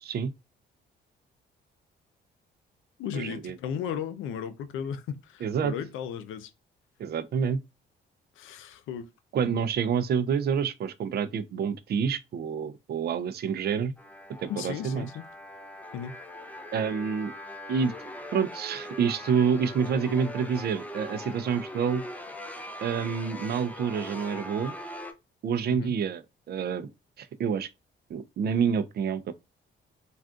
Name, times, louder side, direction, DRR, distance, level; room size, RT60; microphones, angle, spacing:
voice 1, 0.0-0.3 3.1-3.6 5.4-5.7 7.0-7.6 9.3-13.9 14.4-15.1 16.7-17.3 17.7-17.9 18.3-22.0 22.8-24.7 25.4-26.2 26.5-26.9 27.2-27.7 28.1-29.3, right 7 dB, 55° right, 0.5 m, -28 dB
voice 2, 3.0-6.5 8.4-9.1 14.5-15.2 15.9-16.1 25.7-25.9, left 8 dB, 85° left, 0.5 m, -35 dB
sound 1, 14.0-25.1, left 1 dB, 5° left, 0.6 m, -41 dB
3.6 x 2.4 x 2.4 m
cardioid pair, 90°, 20 cm